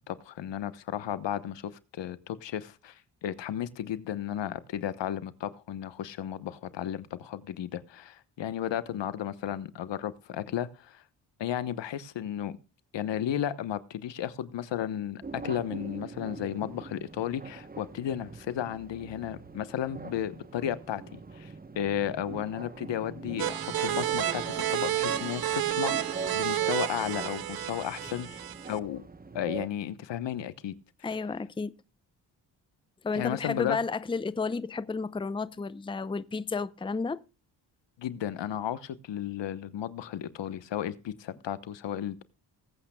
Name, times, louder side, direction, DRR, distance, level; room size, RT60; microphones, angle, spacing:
voice 1, 0.1-11.0 11.4-12.6 12.9-29.1 29.3-30.7 33.1-33.8 38.0-42.2, left 10 dB, 70° left, 1.1 m, -34 dB
sound 1, 15.2-29.7, right 4 dB, 20° right, 1.0 m, -43 dB
sound 2, 23.4-28.8, right 12 dB, 50° right, 0.8 m, -30 dB
voice 2, 31.0-31.7 33.0-37.2, left 4 dB, 10° left, 0.6 m, -32 dB
20.5 x 8.6 x 2.3 m
cardioid pair, 60°, 45 cm